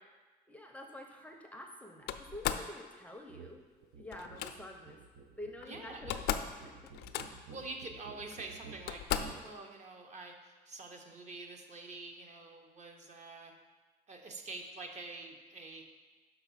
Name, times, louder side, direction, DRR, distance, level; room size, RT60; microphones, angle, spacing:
voice 1, 0.5-3.6 4.0-5.0 5.4-6.2 6.6-7.3, left 1 dB, 10° left, 2 dB, 0.5 m, -48 dB
Slam, 2.1-2.7 4.1-4.5 5.6-5.7 5.9-6.6 6.8-7.5 8.3-8.4 8.9-9.4, left 10 dB, 70° left, 0.4 m, -36 dB
sound 1, 3.3-3.5 3.8-9.4, right 5 dB, 75° right, 0.7 m, -52 dB
voice 2, 5.7-6.2 7.5-13.5 14.1-15.8, right 3 dB, 45° right, 3 dB, 0.8 m, -46 dB
5.8 x 3.9 x 5.6 m, 1.3 s
cardioid pair, 110°, 17 cm